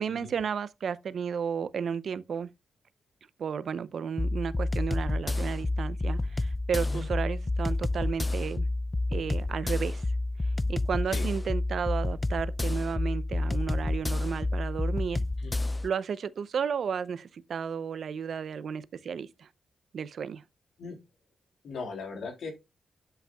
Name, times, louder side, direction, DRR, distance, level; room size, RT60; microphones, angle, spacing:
voice 1, 0.0-2.5 3.4-8.7 9.1-10.1 10.4-15.2 15.8-19.5 19.9-20.4, right 7 dB, 70° right, 0.6 m, -33 dB
sound 1, 4.2-15.9, left 2 dB, 25° left, 0.3 m, -29 dB
voice 2, 21.6-22.5, left 4 dB, 80° left, 3.2 m, -38 dB
11.5 x 5.6 x 2.3 m
cardioid pair, 65°, 0 cm